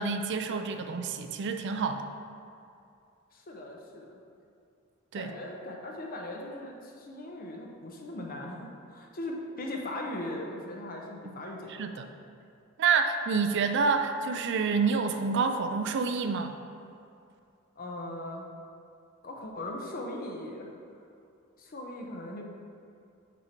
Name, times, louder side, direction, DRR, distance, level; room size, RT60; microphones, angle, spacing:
voice 1, 0.0-2.0 5.1-5.3 11.8-12.1 12.8-16.5, right 5 dB, 55° right, 7 dB, 0.4 m, -28 dB
voice 2, 3.3-4.2 5.1-11.9 17.8-18.5 19.2-20.7 21.6-22.4, left 1 dB, 45° left, 0 dB, 0.8 m, -39 dB
6.2 x 4.4 x 4.4 m, 2.5 s
head